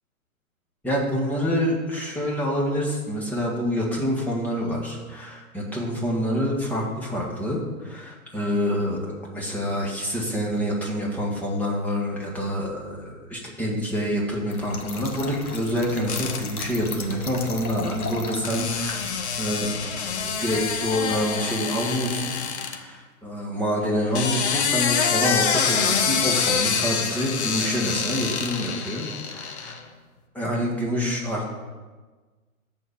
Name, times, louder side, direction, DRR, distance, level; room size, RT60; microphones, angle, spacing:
voice 1, 0.8-29.8 30.3-31.5, equal, 5° left, -3 dB, 1.8 m, -27 dB
Trickle dribble / Fill (with liquid), 14.5-21.2, left 4 dB, 75° left, 1.6 m, -37 dB
sound 1, 16.1-16.7 18.4-22.8 24.0-29.8, left 6 dB, 50° left, 1.2 m, -26 dB
13.0 x 4.6 x 6.7 m, 1.4 s
figure-of-eight pair, 125°, 43 cm